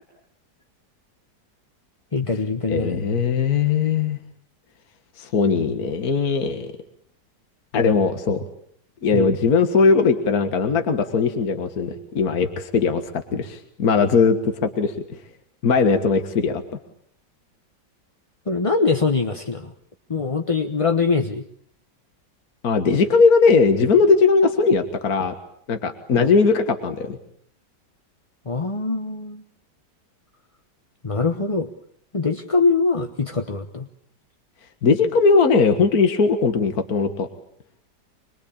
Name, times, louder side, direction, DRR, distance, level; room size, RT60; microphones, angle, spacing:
voice 1, 2.1-3.0 9.1-9.3 18.5-19.7 20.1-21.4 26.1-26.3 28.5-29.4 31.0-31.7 32.1-33.9, left 4 dB, 25° left, 6 dB, 0.9 m, -23 dB
voice 2, 2.7-4.2 5.2-6.7 7.7-8.4 9.0-13.0 13.3-14.9 15.6-16.6 22.6-25.3 25.7-27.2 34.8-37.3, left 4 dB, 60° left, 7 dB, 2.1 m, -19 dB
26.0 x 22.0 x 8.7 m, 0.65 s
omnidirectional pair, 1.9 m